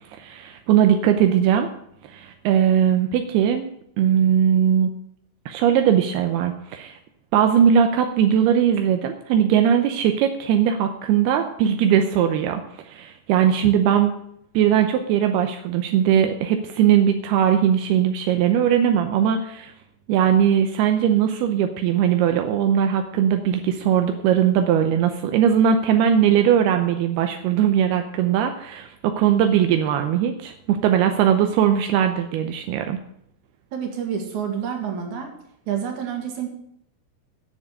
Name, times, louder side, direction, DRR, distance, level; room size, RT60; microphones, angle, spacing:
voice 1, 0.2-1.7 2.1-3.7 4.0-4.9 5.5-7.0 7.3-14.1 14.5-19.7 20.1-33.0, right 9 dB, 85° right, 6 dB, 2.2 m, -19 dB
voice 2, 33.7-35.3 35.7-36.5, right 8 dB, 50° right, 2 dB, 2.6 m, -28 dB
9.9 x 6.8 x 8.6 m, 0.73 s
omnidirectional pair, 5.5 m